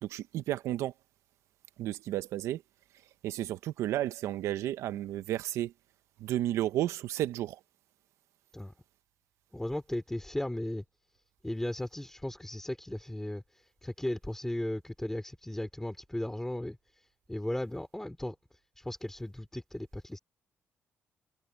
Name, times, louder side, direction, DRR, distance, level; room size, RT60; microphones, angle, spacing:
voice 1, 0.0-0.9 1.8-2.6 3.2-5.7 6.2-7.6, right 13 dB, 85° right, 0.9 m, -32 dB
voice 2, 9.5-10.8 11.4-13.4 13.8-16.8 17.3-18.3 18.8-20.2, left 1 dB, 10° left, 3.2 m, -36 dB
supercardioid pair, 70°, 5 cm